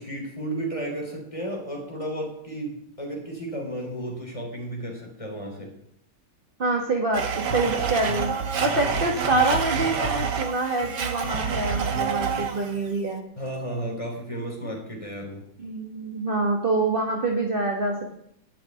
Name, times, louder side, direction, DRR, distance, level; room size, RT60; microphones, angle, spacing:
voice 1, 0.0-5.7 13.4-15.5, right 1 dB, 15° left, 0 dB, 3.7 m, -33 dB
voice 2, 6.6-8.3 8.6-13.2 15.6-18.1, right 2 dB, 30° right, 1 dB, 1.4 m, -26 dB
Domestic sounds home sounds, 7.1-12.8, right 6 dB, 55° right, 1.6 m, -27 dB
11.0 x 6.8 x 9.4 m, 0.71 s
omnidirectional pair, 2.4 m